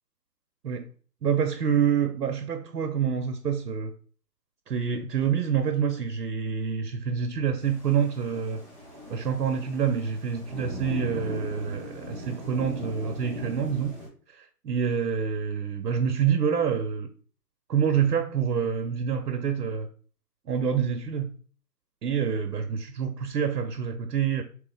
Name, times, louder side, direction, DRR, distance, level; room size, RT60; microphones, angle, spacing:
voice 1, 1.2-3.9 4.7-8.6 9.1-14.0 14.3-17.1 17.7-19.9 20.5-21.3 22.0-24.4, right 7 dB, 80° right, 0.7 m, -27 dB
Thunder / Rain, 7.6-14.1, equal, 10° left, 1.2 m, -38 dB
3.9 x 3.3 x 3.2 m
figure-of-eight pair, 155°, 49 cm